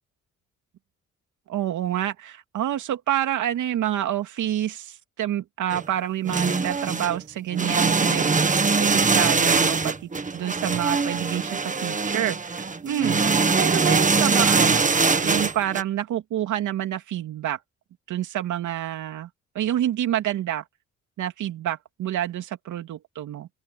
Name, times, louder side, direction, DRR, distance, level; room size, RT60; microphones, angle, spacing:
voice 1, 1.5-8.4 8.8-14.9 15.2-17.6 18.1-19.3 19.5-20.6 21.2-23.5, right 12 dB, 75° right, 2.8 m, -28 dB
sound 1, 5.7-5.8 6.2-7.2 7.5-15.8, right 4 dB, 25° right, 1.6 m, -22 dB
open air
cardioid pair, 90°, 30 cm